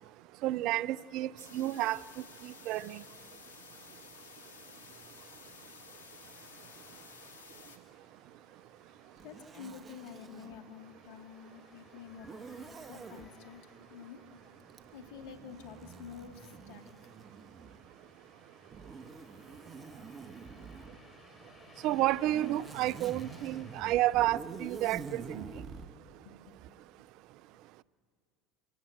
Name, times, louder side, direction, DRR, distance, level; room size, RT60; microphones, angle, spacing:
voice 1, 0.4-2.0 2.4-3.0 21.8-25.5, right 15 dB, 60° right, 0.5 m, -31 dB
sound 1, 1.4-7.8, left 5 dB, 85° left, 2.2 m, -53 dB
sound 2, 4.4-24.2, left 2 dB, 25° left, 3.9 m, -60 dB
voice 2, 9.2-12.6 12.9-13.6 13.9-14.2 14.9-16.9 26.1-26.5, left 7 dB, 70° left, 2.3 m, -49 dB
Zipper (clothing), 9.2-10.6 12.2-13.3 14.7-17.9 18.7-21.0 21.9-25.9, right 5 dB, 30° right, 1.3 m, -47 dB
26.5 x 17.0 x 8.0 m
hypercardioid pair, 80°, 0 cm